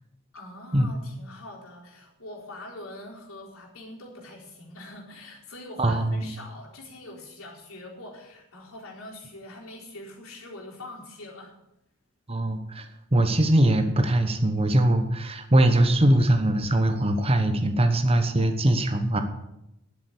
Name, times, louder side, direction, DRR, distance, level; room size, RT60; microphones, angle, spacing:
voice 1, 0.3-11.6, left 1 dB, 85° left, -3 dB, 4.3 m, -43 dB
voice 2, 5.8-6.3 12.3-12.9 13.1-19.2, right 1 dB, 30° right, 7 dB, 1.1 m, -21 dB
11.0 x 8.0 x 9.8 m, 0.85 s
head